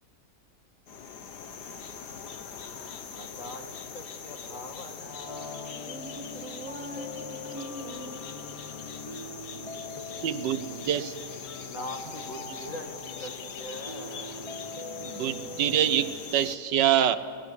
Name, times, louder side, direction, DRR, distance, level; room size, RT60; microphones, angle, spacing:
sound 1, 0.9-16.6, left 6 dB, 70° left, 1.8 m, -42 dB
voice 1, 3.1-5.8 11.6-14.7, left 1 dB, 50° left, 3 dB, 2.7 m, -42 dB
sound 2, 5.3-16.1, left 2 dB, 25° left, 0.7 m, -42 dB
voice 2, 5.7-8.2, right 2 dB, 50° right, 5 dB, 2.0 m, -42 dB
voice 3, 10.2-11.1 15.0-17.2, right 10 dB, 85° right, 12 dB, 1.6 m, -25 dB
28.5 x 18.5 x 8.4 m, 2.2 s
omnidirectional pair, 1.8 m